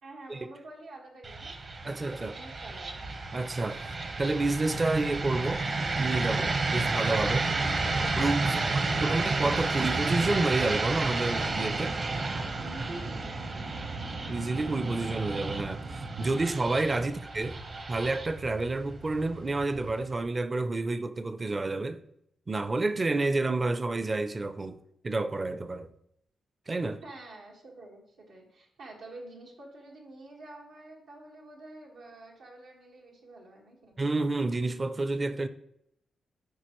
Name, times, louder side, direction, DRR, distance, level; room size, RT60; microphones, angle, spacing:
voice 1, 0.0-1.5 1.8-3.0 7.6-7.8 8.4-9.2 12.3-13.8 27.0-34.0, right 2 dB, 90° right, 1.7 m, -48 dB
sound 1, 1.2-20.2, right 3 dB, 50° right, 1.1 m, -31 dB
voice 2, 1.8-2.4 3.3-5.6 6.0-7.5 8.2-8.6 9.0-12.0 14.3-17.5 17.9-22.0 22.5-24.8 25.0-25.9 26.7-27.0 34.0-35.5, right 2 dB, 30° right, 0.5 m, -29 dB
12.5 x 4.6 x 3.1 m
cardioid pair, 80°, 0 cm